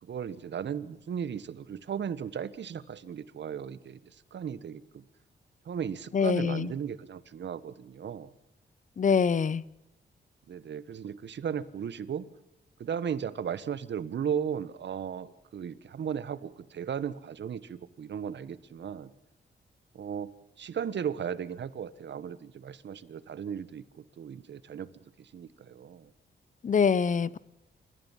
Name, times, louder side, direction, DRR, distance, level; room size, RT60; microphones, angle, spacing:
voice 1, 0.0-5.0 5.6-8.3 10.5-12.3 12.8-19.1 19.9-26.1, right 8 dB, 70° right, 15 dB, 1.4 m, -36 dB
voice 2, 6.1-6.7 9.0-9.6 26.6-27.4, left 6 dB, 40° left, 20 dB, 0.8 m, -24 dB
29.0 x 15.0 x 7.3 m, 0.90 s
wide cardioid pair, 130°, 19 cm